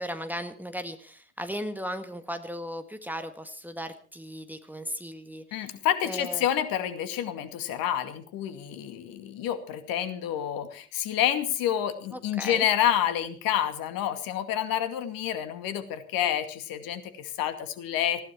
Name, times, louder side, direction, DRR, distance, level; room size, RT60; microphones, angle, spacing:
voice 1, 0.0-5.7 6.0-6.5 12.1-12.7, equal, 5° right, 8 dB, 1.7 m, -36 dB
voice 2, 5.5-18.2, left 10 dB, 50° left, 11 dB, 2.3 m, -28 dB
19.5 x 16.0 x 4.4 m, 0.40 s
figure-of-eight pair, 65°, 44 cm